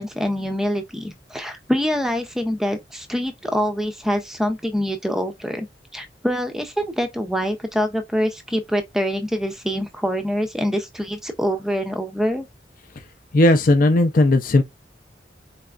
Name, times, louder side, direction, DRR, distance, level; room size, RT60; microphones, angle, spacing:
voice 1, 0.0-5.7 5.9-12.5, equal, 5° right, 0.5 m, -25 dB
voice 2, 13.3-14.6, left 2 dB, 50° left, 0.6 m, -16 dB
4.1 x 3.4 x 2.4 m
head